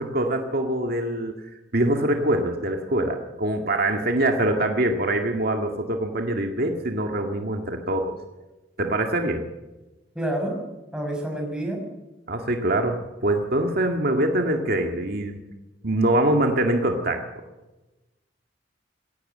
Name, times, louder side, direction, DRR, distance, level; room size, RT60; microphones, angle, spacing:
voice 1, 0.0-1.3 1.7-8.1 8.8-9.4 12.3-15.4 15.8-17.2, right 1 dB, 55° right, 3 dB, 2.0 m, -24 dB
voice 2, 10.1-10.6 10.9-11.9, right 1 dB, 5° right, 1 dB, 6.1 m, -28 dB
19.5 x 17.5 x 7.9 m, 1.1 s
head